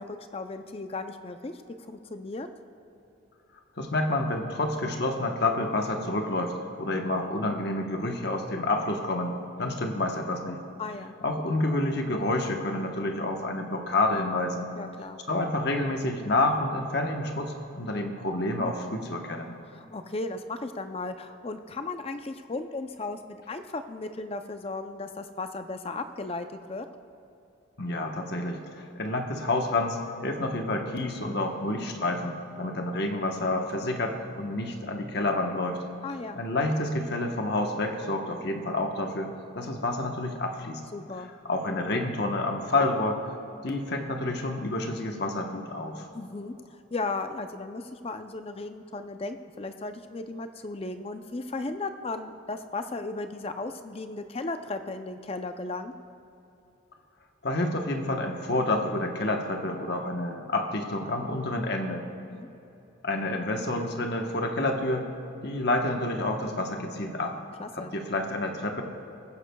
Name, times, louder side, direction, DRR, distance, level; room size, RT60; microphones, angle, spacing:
voice 1, 0.0-1.6 1.9-2.5 10.8-11.1 14.7-15.2 19.7-26.9 36.0-36.4 40.9-41.3 46.1-55.9 62.3-62.5 67.6-67.9, left 3 dB, 30° left, 8 dB, 0.5 m, -36 dB
voice 2, 3.8-6.5 6.8-10.6 11.2-14.7 15.3-19.5 27.8-35.8 36.3-40.8 41.4-43.2 43.6-46.1 57.4-62.0 63.0-65.1 65.4-67.3 67.7-68.8, left 2 dB, 55° left, 3 dB, 1.1 m, -29 dB
21.5 x 9.8 x 2.3 m, 2.8 s
head